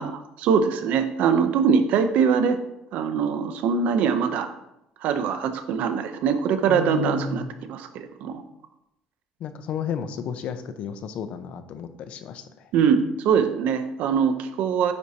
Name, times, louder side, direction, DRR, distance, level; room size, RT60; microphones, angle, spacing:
voice 1, 0.0-2.6 2.9-4.5 5.0-7.4 7.7-8.4 12.7-14.9, right 6 dB, 60° right, 9 dB, 0.6 m, -22 dB
voice 2, 6.7-7.5 9.4-12.7, left 7 dB, 50° left, 10 dB, 0.5 m, -33 dB
9.6 x 4.4 x 2.8 m, 0.86 s
cardioid pair, 175°, 3 cm